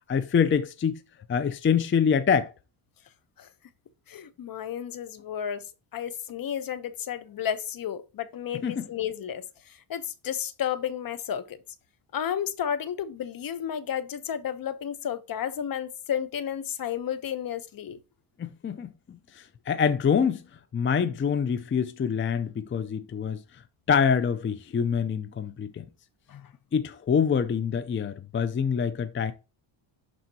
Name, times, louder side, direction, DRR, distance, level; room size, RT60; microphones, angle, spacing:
voice 1, 0.1-1.0 1.3-2.5 8.6-8.9 18.4-18.9 19.4-20.4 20.7-23.4 23.9-25.8 26.7-29.3, left 7 dB, 25° left, 0.5 m, -25 dB
voice 2, 4.1-5.6 5.9-11.6 12.1-18.0 26.3-26.4, left 9 dB, 45° left, 0.9 m, -32 dB
11.5 x 4.2 x 2.8 m
cardioid pair, 105°, 49 cm